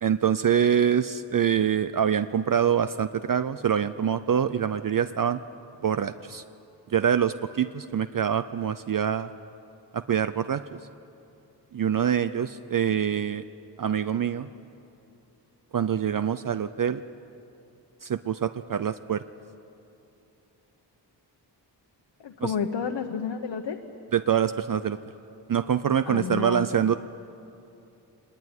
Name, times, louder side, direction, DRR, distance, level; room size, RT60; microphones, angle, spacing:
voice 1, 0.0-5.4 5.8-6.4 6.9-9.3 9.9-10.8 11.7-13.4 13.8-14.5 15.7-17.0 18.0-19.2 22.4-22.6 24.1-25.0 25.5-26.9, right 8 dB, 50° right, 12 dB, 0.6 m, -25 dB
voice 2, 22.2-23.8 26.0-26.7, left 6 dB, 85° left, 4 dB, 1.3 m, -30 dB
24.5 x 20.0 x 9.7 m, 2.8 s
wide cardioid pair, 125°, 42 cm